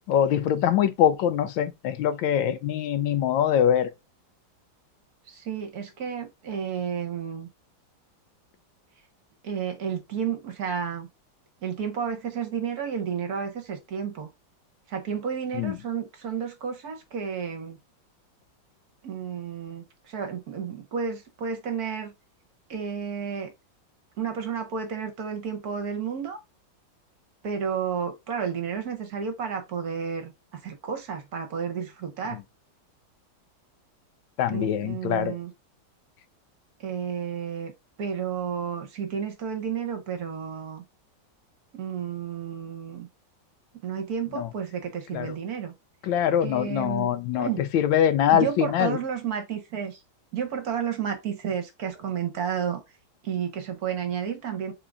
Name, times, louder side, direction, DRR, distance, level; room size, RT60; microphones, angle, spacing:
voice 1, 0.1-3.9 15.5-15.8 34.4-35.4 44.3-44.5 45.1-45.3 46.0-47.5 47.7-49.0, left 10 dB, 85° left, 1.3 m, -23 dB
voice 2, 5.3-7.5 9.4-11.1 11.6-14.3 14.9-17.8 19.0-22.1 22.7-23.5 24.2-26.4 27.4-32.4 34.5-35.5 36.8-37.7 38.0-40.8 41.7-43.1 43.8-45.7 46.4-47.6 48.3-50.0 50.3-52.8 53.2-54.7, right 7 dB, 60° right, 1.2 m, -31 dB
3.7 x 3.7 x 3.4 m
omnidirectional pair, 2.0 m